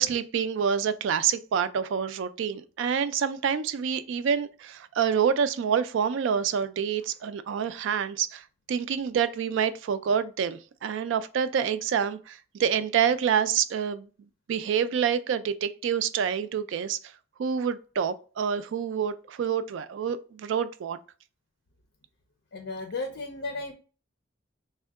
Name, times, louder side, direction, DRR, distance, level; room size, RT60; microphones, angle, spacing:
voice 1, 0.0-14.1 14.5-17.0 17.4-21.0, right 7 dB, 65° right, 0.3 m, -27 dB
voice 2, 22.5-23.7, left 3 dB, 65° left, 0.5 m, -34 dB
3.5 x 2.2 x 3.4 m
head